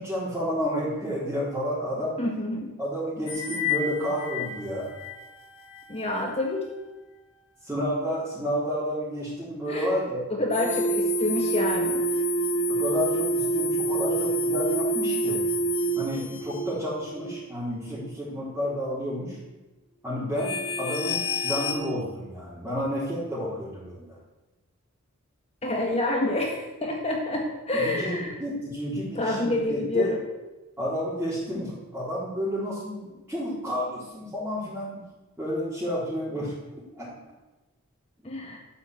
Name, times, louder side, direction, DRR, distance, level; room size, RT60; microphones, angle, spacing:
voice 1, 0.0-2.2 2.8-4.9 7.6-10.2 12.7-15.4 16.0-19.4 20.0-24.1 27.7-30.1 30.8-35.0 35.4-36.5 37.0-37.1, equal, 10° right, -9 dB, 4.0 m, -30 dB
voice 2, 2.2-2.7 5.9-6.6 9.7-10.0 10.3-12.0 25.6-28.4 29.2-30.2 38.2-38.6, left 1 dB, 30° left, 0 dB, 1.7 m, -28 dB
sound 1, 3.3-3.9 4.2-4.5 5.0-5.1 10.5-16.6 17.1-17.3 17.8-18.0 18.5-18.6 20.4-21.7, right 1 dB, 60° left, 2.8 m, -27 dB
13.5 x 8.4 x 8.0 m, 1.1 s
head